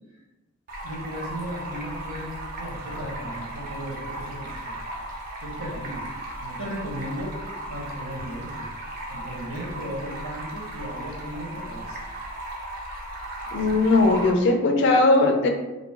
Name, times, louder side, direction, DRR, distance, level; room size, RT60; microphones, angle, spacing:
Stream, 0.7-14.3, right 1 dB, 40° right, 0.4 m, -36 dB
voice 1, 0.8-4.7 5.4-6.0 6.4-7.4 7.7-8.7 9.1-12.0, equal, 75° right, -4 dB, 0.9 m, -36 dB
voice 2, 13.5-15.5, left 2 dB, 55° left, 3 dB, 0.3 m, -19 dB
2.6 x 2.0 x 3.2 m, 1.1 s
head